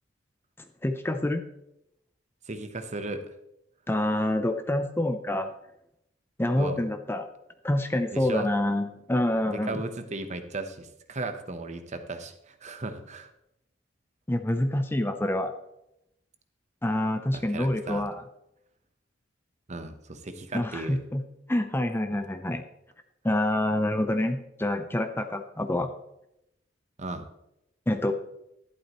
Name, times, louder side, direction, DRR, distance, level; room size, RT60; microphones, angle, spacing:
voice 1, 0.8-1.4 3.9-5.5 6.4-7.3 7.6-9.8 14.3-15.5 16.8-18.2 20.5-21.2 21.5-22.6 23.2-25.9 27.9-28.1, left 1 dB, 10° left, 7 dB, 0.6 m, -27 dB
voice 2, 2.5-3.2 6.6-6.8 8.1-8.5 9.4-13.3 17.3-18.1 19.7-21.0 27.0-27.2, right 2 dB, 40° right, 8 dB, 0.9 m, -36 dB
11.5 x 11.0 x 3.0 m, 0.82 s
head